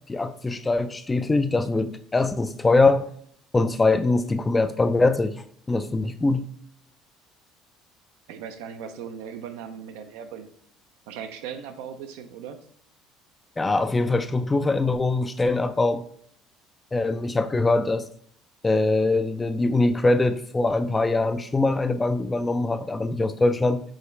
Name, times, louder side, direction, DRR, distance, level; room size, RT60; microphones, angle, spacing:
voice 1, 0.1-3.1 3.5-6.5 13.6-16.0 16.9-18.1 18.6-23.8, left 2 dB, 20° left, 10 dB, 0.3 m, -23 dB
voice 2, 8.3-10.5 11.1-12.6, right 7 dB, 85° right, 8 dB, 0.4 m, -38 dB
4.8 x 2.4 x 3.1 m, 0.63 s
supercardioid pair, 95°, 0 cm